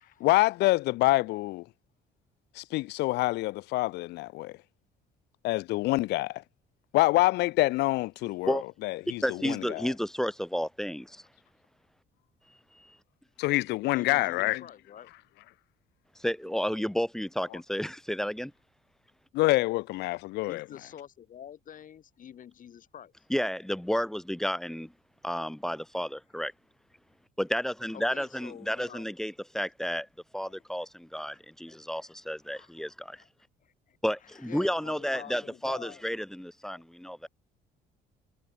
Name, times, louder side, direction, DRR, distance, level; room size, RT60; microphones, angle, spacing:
voice 1, 0.2-1.6 2.6-4.5 5.4-6.4 6.9-9.9 13.4-14.6 19.3-20.6, left 19 dB, 85° left, 0.7 m, -26 dB
voice 2, 9.2-11.2 12.8-12.9 16.2-18.5 23.3-24.9 25.2-26.5 27.4-30.1 30.3-33.2 34.0-37.3, equal, 5° left, 0.6 m, -31 dB
voice 3, 13.9-15.1 20.4-23.3 27.9-29.1 30.4-30.6 31.2-31.4 31.7-32.0 32.5-32.7 33.1-33.3 33.6-34.0 34.2-36.2 36.7-36.8, left 9 dB, 50° left, 7.5 m, -48 dB
cardioid pair, 110°, 17 cm